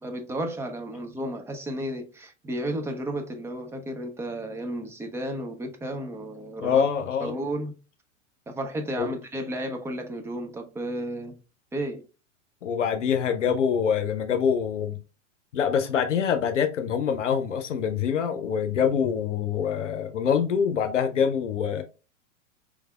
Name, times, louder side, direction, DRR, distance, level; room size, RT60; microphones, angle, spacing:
voice 1, 0.0-6.8 7.2-7.7 8.5-11.4 11.7-12.0, right 1 dB, 5° right, 0.4 m, -33 dB
voice 2, 6.6-7.3 9.0-9.1 12.6-15.0 15.5-21.8, left 7 dB, 75° left, 0.6 m, -25 dB
4.7 x 3.2 x 2.2 m
figure-of-eight pair, 95°, 37 cm